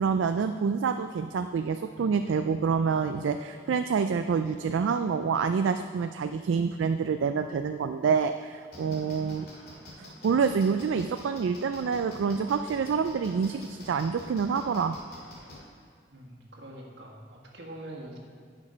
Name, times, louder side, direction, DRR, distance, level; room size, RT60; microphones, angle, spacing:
voice 1, 0.0-9.5 10.0-15.0, right 6 dB, 80° right, 8 dB, 0.3 m, -27 dB
sound 1, 8.7-15.6, left 2 dB, 50° left, 2.3 m, -47 dB
voice 2, 16.1-18.2, right 1 dB, 65° right, -1 dB, 1.6 m, -44 dB
9.8 x 6.3 x 5.1 m, 2.2 s
head